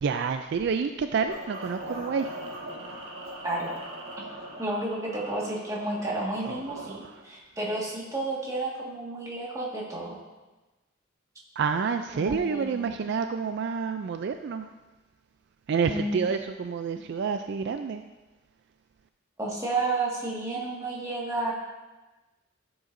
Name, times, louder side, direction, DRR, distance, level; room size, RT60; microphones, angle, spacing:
voice 1, 0.0-2.3 6.3-7.2 11.6-14.7 15.7-18.0, right 5 dB, 55° right, 8 dB, 0.3 m, -29 dB
sound 1, 1.3-7.2, right 1 dB, 80° right, 1.7 m, -41 dB
voice 2, 3.4-3.7 4.2-4.3 4.6-10.2 12.1-12.9 15.9-16.3 19.4-21.5, right 2 dB, 15° right, -4 dB, 1.7 m, -31 dB
13.5 x 7.8 x 2.6 m, 1.2 s
head